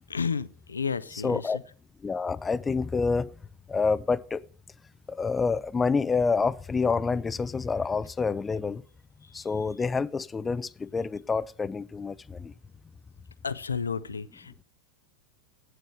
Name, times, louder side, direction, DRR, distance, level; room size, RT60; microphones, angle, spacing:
voice 1, 0.1-1.6 9.2-9.4 13.4-14.6, left 5 dB, 75° left, 0.5 m, -32 dB
voice 2, 1.2-1.6 2.0-3.3 3.7-4.5 5.1-8.8 9.3-12.5, left 4 dB, 15° left, 0.4 m, -28 dB
9.0 x 8.0 x 6.2 m
figure-of-eight pair, 90°, 0 cm